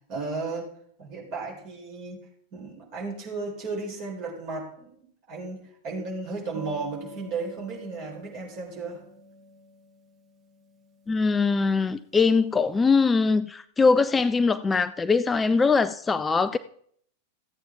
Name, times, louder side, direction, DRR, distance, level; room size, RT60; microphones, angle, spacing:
voice 1, 0.1-0.7 1.0-9.0, right 3 dB, 40° right, 4.0 m, -35 dB
sound 1, 6.5-12.7, right 3 dB, 25° right, 1.8 m, -47 dB
voice 2, 11.1-16.6, left 4 dB, 15° left, 0.3 m, -22 dB
14.0 x 8.7 x 3.5 m
figure-of-eight pair, 90°, 0 cm